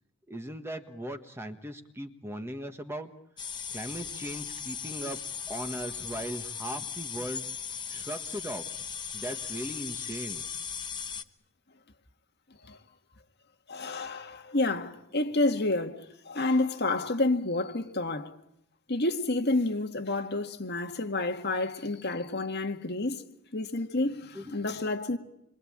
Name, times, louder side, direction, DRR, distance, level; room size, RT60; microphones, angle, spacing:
voice 1, 0.3-3.1 3.7-5.2 5.5-7.5 7.9-8.6 9.1-10.4 24.3-24.4, right 1 dB, 10° right, 1.4 m, -38 dB
sound 1, 3.4-11.2, left 7 dB, 20° left, 0.9 m, -38 dB
voice 2, 13.7-18.3 18.9-23.2 23.5-25.2, left 2 dB, 50° left, 1.9 m, -29 dB
27.5 x 23.5 x 8.8 m
head